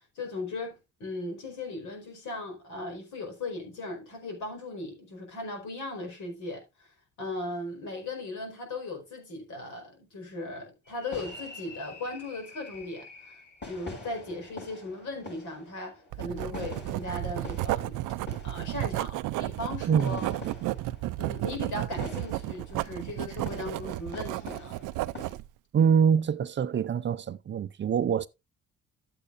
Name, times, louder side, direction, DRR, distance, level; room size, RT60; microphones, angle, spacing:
voice 1, 0.1-6.9 7.2-13.4 13.7-18.0 18.4-20.4 21.2-24.8, left 2 dB, 75° left, 4.9 m, -38 dB
sound 1, 10.8-25.3, left 3 dB, 35° left, 6.3 m, -46 dB
Writing, 16.1-25.5, right 17 dB, 90° right, 0.5 m, -33 dB
voice 2, 19.9-20.3 25.7-28.3, right 7 dB, 40° right, 0.5 m, -25 dB
12.0 x 8.5 x 2.5 m
cardioid pair, 90°, 30 cm